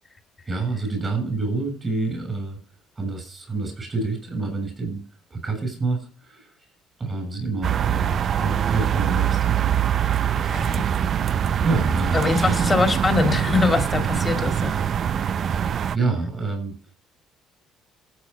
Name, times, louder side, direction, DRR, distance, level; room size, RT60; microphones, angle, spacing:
voice 1, 0.5-2.6 3.0-5.0 5.3-6.5 7.0-9.6 11.6-12.7 15.6-16.8, right 3 dB, 25° right, 7.2 m, -27 dB
sound 1, 7.6-16.0, right 9 dB, 45° right, 0.5 m, -23 dB
voice 2, 10.3-10.9 11.2-11.3 12.1-15.8, left 4 dB, 20° left, 2.1 m, -24 dB
14.0 x 8.4 x 5.6 m
cardioid pair, 135°, 0 cm